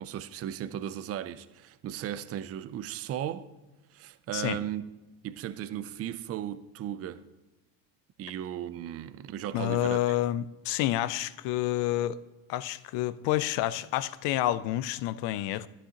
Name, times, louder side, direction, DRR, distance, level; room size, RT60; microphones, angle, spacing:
voice 1, 0.0-3.5 3.9-4.8 5.2-7.2 8.2-10.2, right 11 dB, 35° right, 0.4 m, -36 dB
voice 2, 9.5-12.2 12.5-15.7, left 14 dB, 65° left, 0.6 m, -29 dB
11.0 x 10.0 x 2.9 m
supercardioid pair, 110°, 45 cm